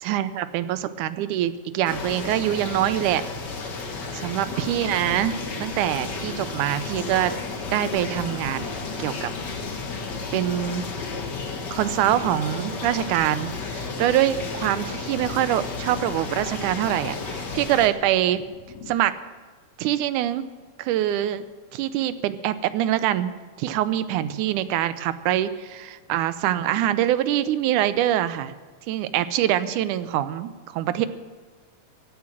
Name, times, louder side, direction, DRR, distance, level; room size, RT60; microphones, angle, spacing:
voice 1, 0.0-3.2 4.2-7.4 7.7-8.7 9.0-9.3 10.3-10.9 11.7-18.4 18.9-19.1 19.8-20.4 20.8-21.5 21.7-28.5 28.9-31.1, right 12 dB, 90° right, 13 dB, 2.2 m, -24 dB
sound 1, 1.8-17.9, left 4 dB, 45° left, 1.7 m, -33 dB
sound 2, 4.5-18.9, left 5 dB, 65° left, 1.7 m, -41 dB
15.5 x 9.7 x 7.6 m, 1.4 s
omnidirectional pair, 3.5 m